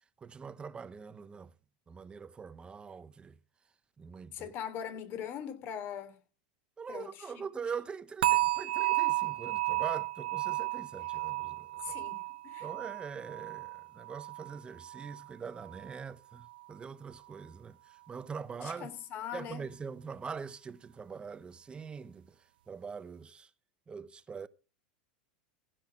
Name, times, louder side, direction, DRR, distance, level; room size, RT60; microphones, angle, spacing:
voice 1, 0.2-1.5 1.9-3.4 4.0-4.5 6.8-12.0 12.6-18.9 19.3-23.5 23.9-24.5, right 6 dB, 20° right, 0.8 m, -43 dB
voice 2, 4.3-6.2 6.9-7.2 11.8-12.2 12.4-12.7 18.5-19.7, left 9 dB, 45° left, 2.9 m, -41 dB
sound 1, 8.2-15.3 15.6-16.0 16.5-16.6, right 19 dB, 80° right, 0.7 m, -33 dB
15.5 x 6.2 x 6.1 m
hypercardioid pair, 105°, 5 cm